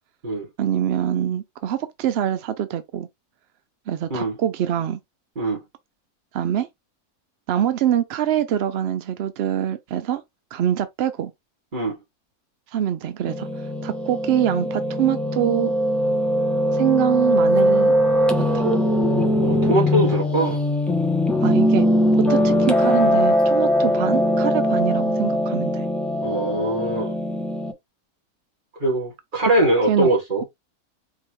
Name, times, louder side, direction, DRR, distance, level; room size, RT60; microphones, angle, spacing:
voice 1, 0.6-3.1 3.9-5.0 6.3-6.7 7.5-10.2 10.5-11.3 12.7-13.5 13.8-15.7 16.7-17.9 18.5-18.7 21.4-21.8 22.3-25.9 29.9-30.1, right 10 dB, 75° right, 0.5 m, -24 dB
Piano, 13.3-27.7, equal, ahead, 0.3 m, -21 dB
voice 2, 19.4-20.6 26.2-27.1 28.8-30.4, right 1 dB, 35° right, 2.1 m, -22 dB
4.7 x 3.1 x 3.0 m
omnidirectional pair, 1.6 m